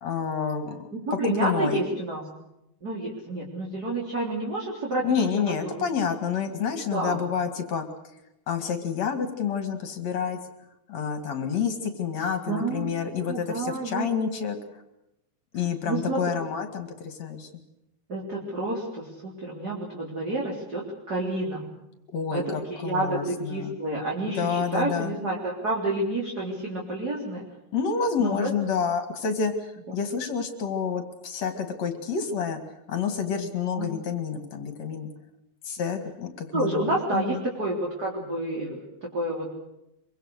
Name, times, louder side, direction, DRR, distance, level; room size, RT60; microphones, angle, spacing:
voice 1, 0.0-0.9 1.2-1.8 5.0-7.8 8.5-10.4 10.9-14.6 15.5-17.5 22.1-23.7 24.4-25.1 27.7-32.6 32.9-35.1 35.6-37.4, left 6 dB, 50° left, 7 dB, 3.0 m, -29 dB
voice 2, 1.1-2.3 2.8-5.8 6.9-7.2 12.5-12.9 13.3-14.1 15.9-16.2 18.1-21.7 22.3-22.4 22.7-27.5 28.2-28.5 29.9-30.0 33.7-33.9 36.5-39.5, right 2 dB, 25° right, -3 dB, 4.0 m, -29 dB
25.0 x 24.0 x 6.6 m, 0.86 s
omnidirectional pair, 4.3 m